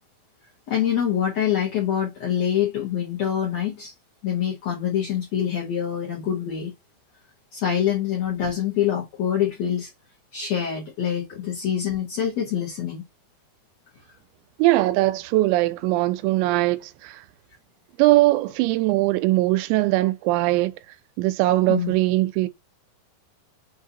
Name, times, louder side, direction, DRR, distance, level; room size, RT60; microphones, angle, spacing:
voice 1, 0.7-3.9 4.2-6.7 7.5-9.9 10.3-13.0 21.7-21.9, left 9 dB, 80° left, 1.5 m, -25 dB
voice 2, 14.6-17.2 18.0-20.7 21.2-22.5, right 18 dB, 85° right, 2.8 m, -21 dB
6.5 x 2.7 x 2.7 m
omnidirectional pair, 5.1 m